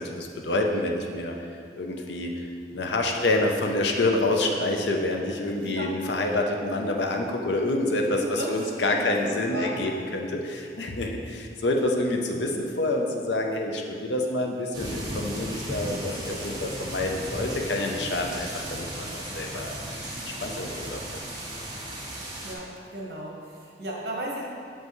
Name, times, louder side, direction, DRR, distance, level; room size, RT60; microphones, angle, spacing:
voice 1, 0.0-1.3 1.7-2.4 2.7-20.0 20.4-21.0, left 2 dB, 85° left, 2 dB, 0.6 m, -27 dB
voice 2, 5.5-5.9 8.2-9.7 22.4-22.6 22.9-24.4, right 1 dB, 65° right, -2 dB, 1.2 m, -35 dB
sound 1, 14.7-22.6, right 1 dB, 25° right, 1.0 m, -35 dB
6.6 x 5.4 x 3.1 m, 2.4 s
head